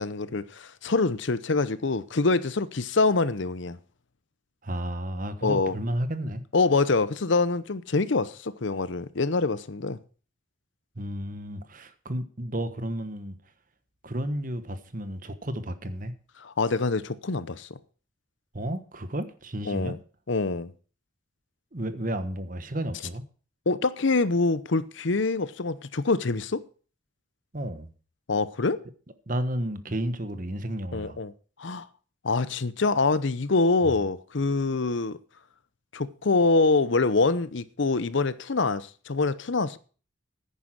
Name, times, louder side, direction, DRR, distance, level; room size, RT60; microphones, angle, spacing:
voice 1, 0.0-3.8 5.4-5.7 6.5-10.0 16.4-17.7 19.7-20.0 20.3-20.7 23.7-26.6 28.3-28.8 30.9-31.3 31.6-31.9 32.2-35.2 35.9-39.8, left 3 dB, 65° left, 0.8 m, -25 dB
voice 2, 4.6-6.4 11.0-13.3 14.0-16.1 18.5-19.9 21.7-23.2 27.5-27.9 29.3-31.2 33.8-33.9, right 1 dB, 40° right, 1.3 m, -32 dB
10.0 x 9.6 x 6.1 m
head